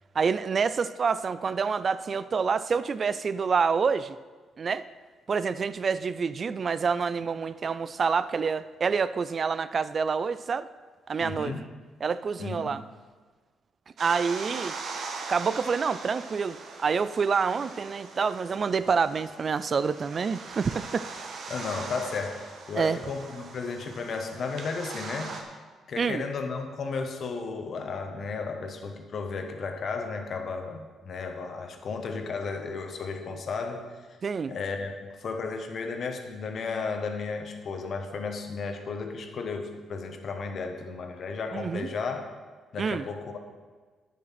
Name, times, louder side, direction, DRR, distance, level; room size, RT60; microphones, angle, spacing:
voice 1, 0.1-4.2 4.6-4.8 5.3-10.7 11.1-11.5 12.0-12.8 14.0-14.8 15.3-21.3 22.7-23.0 26.0-26.2 34.2-34.5 41.5-41.9 42.8-43.1, right 5 dB, 45° right, 15 dB, 0.4 m, -27 dB
voice 2, 11.2-11.6 12.4-12.7 21.5-25.4 25.9-33.9 34.5-42.3 42.7-43.4, left 4 dB, 55° left, 5 dB, 1.3 m, -34 dB
sound 1, 14.0-25.4, right 4 dB, 60° right, 1.4 m, -41 dB
9.4 x 7.5 x 5.8 m, 1.4 s
cardioid pair, 90°, 0 cm